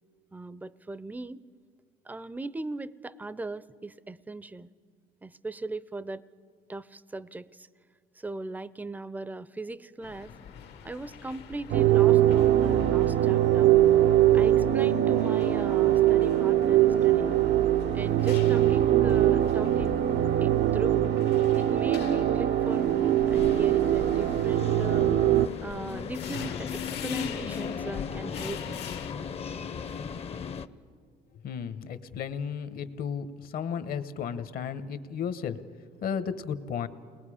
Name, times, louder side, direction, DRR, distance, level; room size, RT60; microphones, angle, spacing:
voice 1, 0.3-1.4 2.1-4.7 5.2-6.2 6.7-7.5 8.2-10.3 10.8-13.8 14.3-17.4 17.9-20.0 20.4-21.1 21.6-25.1 25.6-28.8, right 2 dB, 10° right, 17 dB, 0.5 m, -38 dB
sound 1, 10.0-29.1, left 8 dB, 85° left, 1.5 m, -44 dB
sound 2, 11.7-25.5, right 12 dB, 70° right, 0.5 m, -22 dB
sound 3, 23.3-30.7, left 7 dB, 35° left, 0.6 m, -36 dB
voice 2, 31.4-35.6 36.0-36.9, left 7 dB, 60° left, 11 dB, 1.0 m, -34 dB
29.0 x 20.5 x 5.0 m, 2.2 s
cardioid pair, 110°, 17 cm